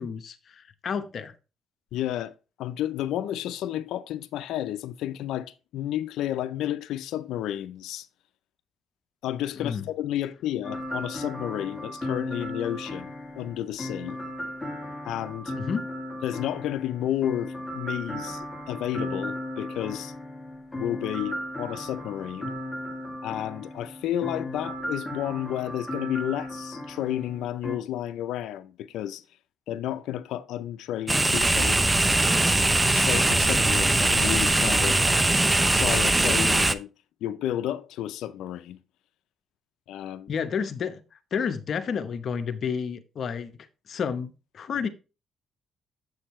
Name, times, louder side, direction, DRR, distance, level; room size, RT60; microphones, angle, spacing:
voice 1, 0.0-1.3 9.6-9.9 15.5-15.9 40.3-41.0 41.3-44.9, left 6 dB, 55° left, 0.9 m, -31 dB
voice 2, 1.9-2.3 2.6-8.1 9.2-14.2 15.0-15.5 16.2-20.1 20.8-22.5 23.2-29.2 29.7-31.8 32.9-35.0 35.7-36.9 37.2-38.8 39.9-40.3, left 12 dB, 85° left, 0.5 m, -31 dB
sound 1, 10.6-27.8, left 1 dB, 15° left, 1.8 m, -36 dB
sound 2, 31.1-36.7, right 2 dB, 15° right, 0.6 m, -21 dB
8.0 x 6.6 x 3.1 m
cardioid pair, 90°, 0 cm